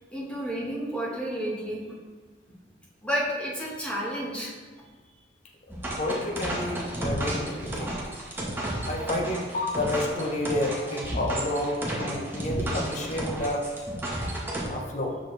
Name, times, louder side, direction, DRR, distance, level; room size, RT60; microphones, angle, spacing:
voice 1, 0.1-1.9 3.0-4.5, equal, 5° left, -6 dB, 1.6 m, -31 dB
sound 1, 5.7-14.7, right 1 dB, 10° right, 1.2 m, -32 dB
voice 2, 6.0-7.9 8.9-13.7 14.6-15.2, left 1 dB, 40° left, 1 dB, 0.9 m, -30 dB
6.7 x 6.2 x 3.3 m, 1.4 s
head